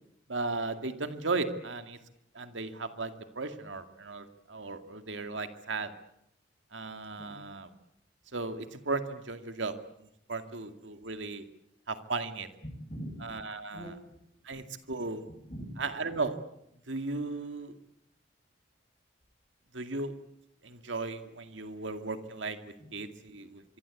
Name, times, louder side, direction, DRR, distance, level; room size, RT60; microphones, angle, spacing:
voice 1, 0.3-2.0 2.3-5.9 6.7-7.7 8.3-9.7 10.3-11.4 11.9-12.5 13.2-14.0 14.5-15.2 15.8-16.4 16.9-17.8 19.7-20.1 20.6-23.6, right 3 dB, 80° right, 8 dB, 2.2 m, -36 dB
voice 2, 12.6-13.3 13.7-14.2 15.3-15.8 22.8-22.9, equal, 30° left, 4 dB, 7.6 m, -43 dB
25.0 x 24.5 x 8.5 m, 0.78 s
head